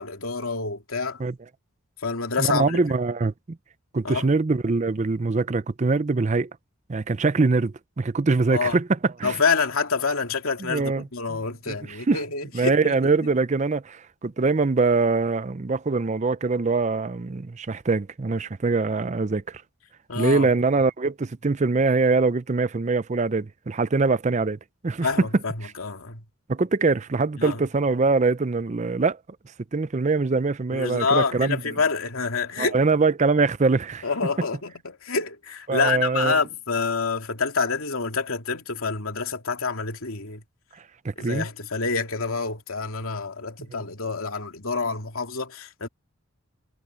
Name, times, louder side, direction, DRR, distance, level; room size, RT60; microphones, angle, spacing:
voice 1, 0.0-1.2 2.0-2.8 4.0-4.3 8.5-8.8 9.2-13.0 20.1-20.5 25.0-26.2 27.4-27.6 30.7-32.8 34.0-40.4 41.2-45.9, left 4 dB, 85° left, 2.6 m, -27 dB
voice 2, 2.4-3.3 3.9-6.5 6.9-9.4 10.7-11.4 11.7-12.2 12.5-19.6 20.2-24.6 24.8-25.3 25.6-25.7 26.5-29.2 29.7-31.6 32.6-34.0 35.7-36.4 41.0-41.5, right 3 dB, 35° right, 0.5 m, -23 dB
head